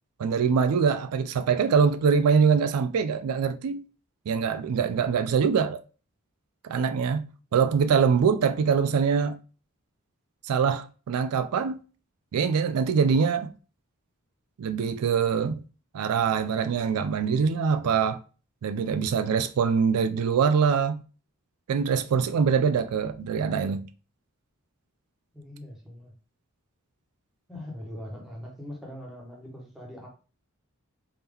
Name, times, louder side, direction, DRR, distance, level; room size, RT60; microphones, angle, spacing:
voice 1, 0.2-3.8 4.3-5.8 6.6-7.2 7.5-9.4 10.4-11.8 12.3-13.5 14.6-15.6 15.9-18.2 18.6-21.0 21.7-23.9, right 6 dB, 85° right, 0.4 m, -24 dB
voice 2, 25.3-26.1 27.5-30.1, left 1 dB, ahead, 1.1 m, -41 dB
3.5 x 2.8 x 3.5 m
head